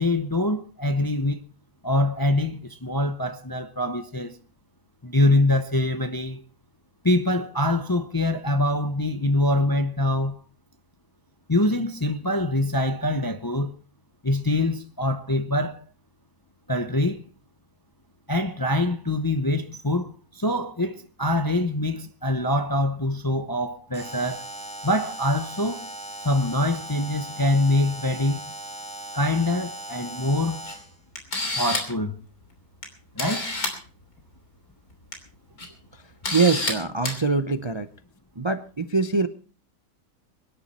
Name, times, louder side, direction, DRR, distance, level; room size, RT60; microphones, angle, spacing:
voice 1, 0.0-1.4 1.8-4.4 5.0-6.4 7.0-10.4 11.5-13.7 14.2-15.8 16.7-17.3 18.3-24.5 24.8-25.8 26.2-28.4 29.1-30.6 31.6-32.1 33.2-33.5, left 1 dB, 20° left, 0.6 m, -24 dB
Alarm, 23.9-31.0, right 1 dB, 5° left, 2.2 m, -38 dB
Camera, 30.7-30.8 31.2-32.0 32.8-32.9 33.2-33.8 34.9-35.1 35.6-35.7 36.2-36.7 37.0-37.2, left 2 dB, 75° left, 3.6 m, -28 dB
voice 2, 36.3-37.9 38.4-39.3, right 4 dB, 30° right, 0.5 m, -23 dB
24.0 x 10.5 x 4.2 m
omnidirectional pair, 1.6 m